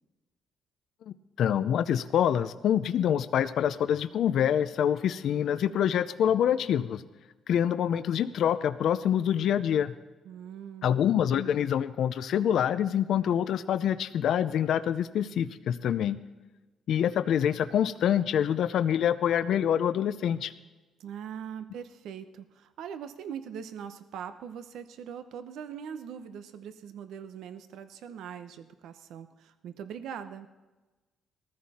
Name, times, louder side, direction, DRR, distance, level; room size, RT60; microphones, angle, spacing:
voice 1, 1.1-7.0 7.5-9.9 10.8-16.2 16.9-20.5, left 9 dB, 70° left, 12 dB, 0.6 m, -26 dB
voice 2, 10.2-11.0 21.0-30.5, right 8 dB, 80° right, 10 dB, 0.8 m, -41 dB
19.5 x 14.0 x 4.3 m, 1.2 s
cardioid pair, 90°, 0 cm